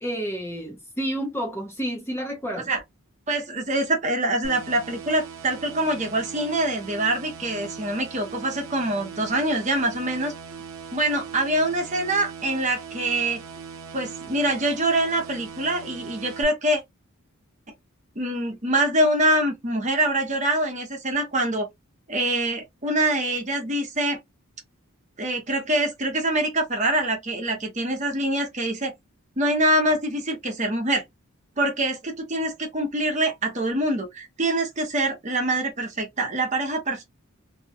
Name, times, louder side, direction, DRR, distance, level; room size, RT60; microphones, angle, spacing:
voice 1, 0.0-2.7, equal, 10° left, 0.5 m, -30 dB
voice 2, 3.3-10.3 10.9-13.4 13.9-16.8 18.2-21.7 22.1-24.2 25.2-28.9 29.4-31.0 31.6-37.0, right 1 dB, 35° right, 0.9 m, -24 dB
sound 1, 4.4-16.4, right 6 dB, 70° right, 0.5 m, -40 dB
2.8 x 2.2 x 2.7 m
head